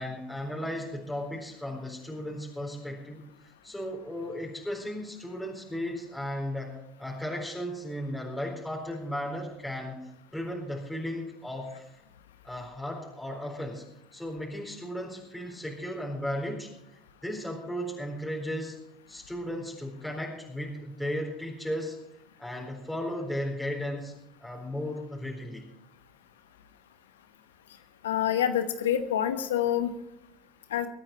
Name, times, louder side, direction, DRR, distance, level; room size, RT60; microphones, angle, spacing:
voice 1, 0.0-3.2 3.6-6.7 7.0-11.9 12.4-13.8 14.1-16.7 17.2-18.8 19.1-22.0 22.4-24.1 24.4-25.7, equal, 5° left, -3 dB, 4.2 m, -35 dB
voice 2, 28.0-29.9 30.7-30.9, left 10 dB, 90° left, 9 dB, 1.0 m, -26 dB
23.0 x 8.8 x 4.4 m, 0.82 s
hypercardioid pair, 75°, 0 cm